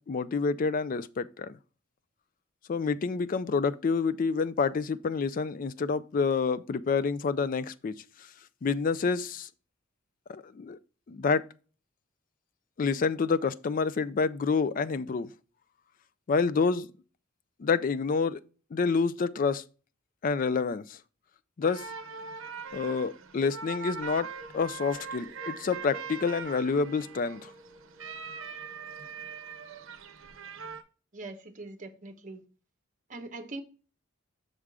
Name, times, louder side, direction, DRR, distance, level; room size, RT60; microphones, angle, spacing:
voice 1, 0.0-1.6 2.7-7.9 8.2-8.3 8.6-9.5 10.3-10.8 11.1-11.4 12.8-15.3 16.3-16.9 17.6-18.4 18.7-19.6 20.2-21.0 21.6-21.9 22.7-27.5, left 5 dB, 40° left, 0.4 m, -28 dB
sound 1, 21.6-30.8, right 5 dB, 75° right, 0.7 m, -41 dB
sound 2, 22.4-29.9, equal, 10° left, 1.3 m, -54 dB
voice 2, 31.1-32.4 33.1-33.6, right 2 dB, 40° right, 0.9 m, -42 dB
6.6 x 3.7 x 4.7 m
head